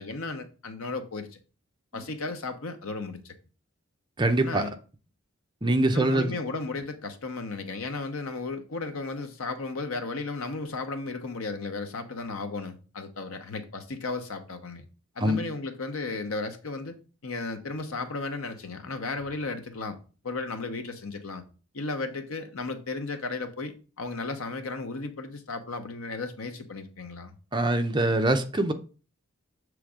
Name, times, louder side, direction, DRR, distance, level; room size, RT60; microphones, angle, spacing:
voice 1, 0.0-1.4 1.9-3.3 4.4-4.7 5.9-14.9 15.2-17.0 17.2-20.0 20.2-21.4 21.7-27.3, left 3 dB, 80° left, 0.9 m, -34 dB
voice 2, 4.2-4.6 5.6-6.3 15.2-15.4 27.5-28.7, right 1 dB, 20° right, 0.6 m, -24 dB
7.0 x 3.3 x 4.9 m
head